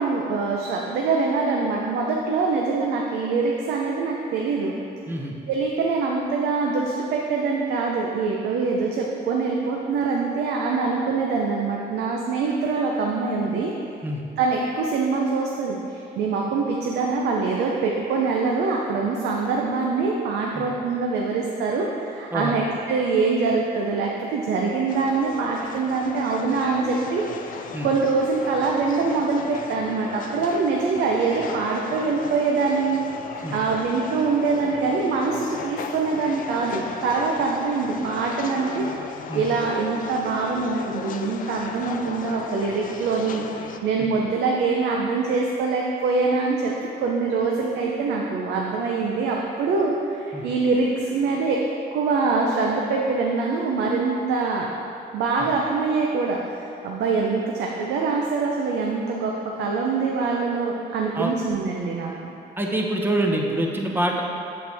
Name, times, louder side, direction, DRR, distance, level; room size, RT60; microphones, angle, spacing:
voice 1, 0.0-4.7 5.5-13.7 14.4-33.0 33.3-38.9 39.3-46.7 47.0-51.6 51.9-54.7 55.1-59.3 59.6-62.3, right 4 dB, 90° right, -1 dB, 0.7 m, -24 dB
sound 1, 24.9-43.8, left 6 dB, 55° left, 0.5 m, -36 dB
voice 2, 62.6-64.2, right 1 dB, 10° right, 0 dB, 0.9 m, -25 dB
7.9 x 7.6 x 3.5 m, 2.7 s
cardioid pair, 120°, 17 cm